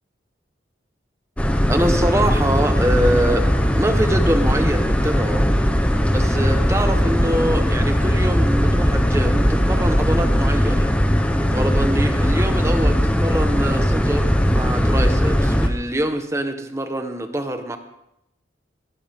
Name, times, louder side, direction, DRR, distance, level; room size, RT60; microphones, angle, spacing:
sound 1, 1.4-15.7, equal, 5° left, 0.9 m, -19 dB
voice 1, 1.7-3.5 3.7-5.5 6.1-10.9 11.5-17.8, right 1 dB, 15° right, 7 dB, 1.1 m, -24 dB
18.0 x 15.5 x 3.6 m, 0.82 s
head